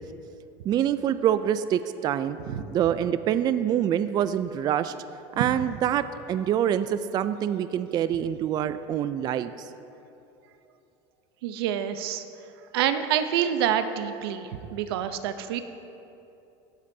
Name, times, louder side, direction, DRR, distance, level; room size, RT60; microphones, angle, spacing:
voice 1, 0.6-2.4 2.7-4.9 5.4-9.7, right 10 dB, 35° right, 12 dB, 0.4 m, -25 dB
voice 2, 11.4-12.2 12.7-15.6, right 9 dB, 85° right, 9 dB, 0.8 m, -27 dB
16.5 x 13.0 x 2.8 m, 2.8 s
supercardioid pair, 130°, 12 cm